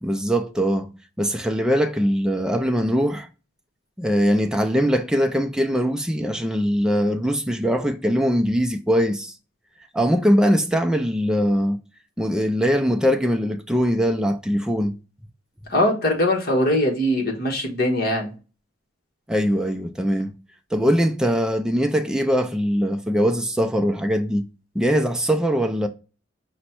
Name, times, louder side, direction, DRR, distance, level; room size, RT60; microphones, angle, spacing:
voice 1, 0.0-0.9 1.2-3.3 4.0-9.3 9.9-11.8 12.2-14.9 19.3-20.4 20.7-24.4 24.7-25.9, equal, 5° right, 0.3 m, -21 dB
voice 2, 15.7-18.3, left 1 dB, 50° left, 1.1 m, -21 dB
5.1 x 2.2 x 4.3 m
head